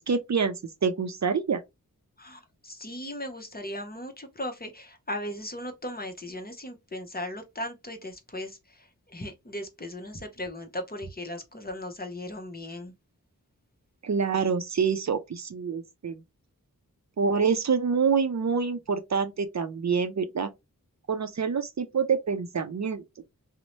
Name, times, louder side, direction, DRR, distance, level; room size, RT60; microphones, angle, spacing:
voice 1, 0.1-0.6 0.8-1.6 14.0-16.2 17.2-20.5 21.1-23.0, right 5 dB, 50° right, 0.5 m, -26 dB
voice 2, 2.2-12.9, left 1 dB, 25° left, 0.7 m, -37 dB
2.7 x 2.0 x 3.0 m
wide cardioid pair, 50°, 35 cm